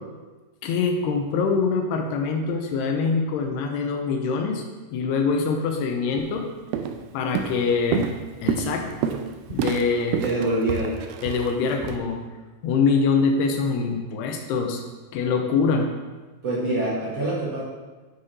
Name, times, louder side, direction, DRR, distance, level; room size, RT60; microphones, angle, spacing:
voice 1, 0.6-4.6 4.9-6.5 7.1-8.1 8.4-8.9 9.5-10.2 11.2-12.2 12.6-14.8 15.1-15.9, left 5 dB, 85° left, 4 dB, 2.9 m, -24 dB
Walk footsteps, 6.2-6.4 6.7-7.1 7.4-12.0, right 7 dB, 85° right, 2.1 m, -29 dB
voice 2, 10.2-11.0 16.4-17.6, right 1 dB, 50° right, -7 dB, 2.1 m, -25 dB
9.7 x 5.8 x 4.2 m, 1.2 s
omnidirectional pair, 4.7 m